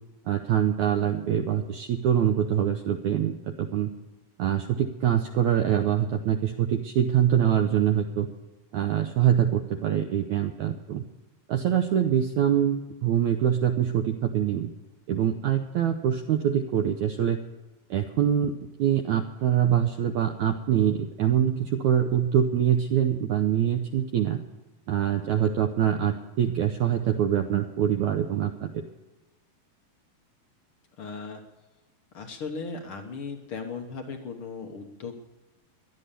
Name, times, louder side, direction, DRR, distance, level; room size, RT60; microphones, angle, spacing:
voice 1, 0.3-3.9 4.4-8.3 8.7-11.0 11.5-14.7 15.1-17.4 17.9-18.5 18.8-24.4 24.9-28.8, right 9 dB, 75° right, 5 dB, 1.7 m, -24 dB
voice 2, 31.0-31.4 32.1-35.1, left 4 dB, 70° left, 4 dB, 1.2 m, -37 dB
16.5 x 11.5 x 6.8 m, 1.1 s
omnidirectional pair, 4.2 m